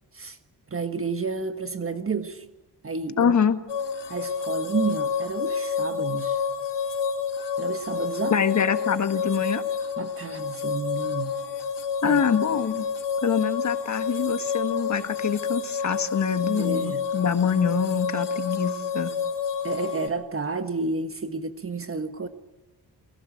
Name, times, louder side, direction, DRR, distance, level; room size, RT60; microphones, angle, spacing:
voice 1, 0.7-2.5 2.8-3.3 4.1-6.4 7.6-8.4 10.0-11.4 12.0-12.2 16.6-17.0 19.6-22.3, right 4 dB, 30° right, 9 dB, 1.5 m, -31 dB
voice 2, 3.2-3.6 8.3-9.6 12.0-12.9 13.2-19.1, left 7 dB, 45° left, 10 dB, 1.7 m, -25 dB
sound 1, 3.7-20.1, left 6 dB, 85° left, 3.5 m, -29 dB
29.5 x 22.0 x 7.8 m, 1.1 s
wide cardioid pair, 140°, 40 cm